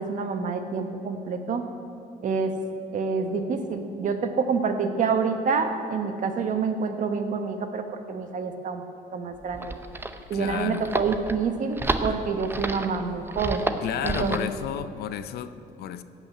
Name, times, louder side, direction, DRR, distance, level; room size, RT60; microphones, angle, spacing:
voice 1, 0.0-1.6 2.2-2.5 2.9-8.8 9.1-9.7 10.3-13.6 14.0-14.4, right 5 dB, 50° right, 1.2 m, -27 dB
sound 1, 9.3-14.5, right 2 dB, 15° right, 0.7 m, -31 dB
voice 2, 10.3-10.9 13.8-16.0, left 10 dB, 70° left, 0.6 m, -32 dB
15.5 x 5.8 x 8.6 m
cardioid pair, 110°, 17 cm